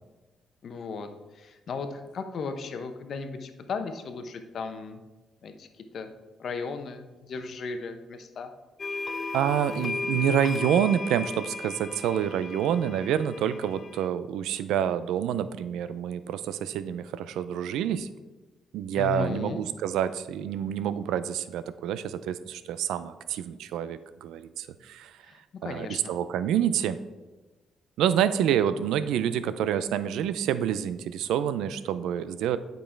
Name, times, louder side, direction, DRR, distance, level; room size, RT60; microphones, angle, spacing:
voice 1, 0.6-5.0 5.4-6.1 6.4-8.5 19.0-19.6 25.2-26.1, left 4 dB, 60° left, 7 dB, 0.8 m, -36 dB
sound 1, 8.8-14.1, left 3 dB, 35° left, 0.4 m, -35 dB
voice 2, 9.3-18.1 18.7-25.1 25.6-27.0 28.0-32.6, right 9 dB, 85° right, 13 dB, 0.4 m, -27 dB
8.7 x 5.3 x 4.5 m, 1.2 s
cardioid pair, 90°, 0 cm